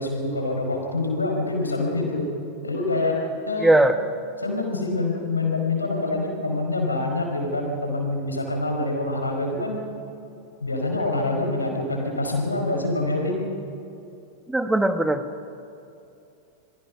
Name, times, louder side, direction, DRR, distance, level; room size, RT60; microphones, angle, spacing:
voice 1, 0.0-2.3 2.6-3.7 4.4-9.8 10.6-13.4, left 2 dB, 80° left, 2 dB, 4.9 m, -26 dB
voice 2, 3.6-4.0 14.5-15.2, right 1 dB, 5° right, 9 dB, 1.4 m, -19 dB
27.5 x 22.5 x 6.0 m, 2.7 s
figure-of-eight pair, 90°, 0 cm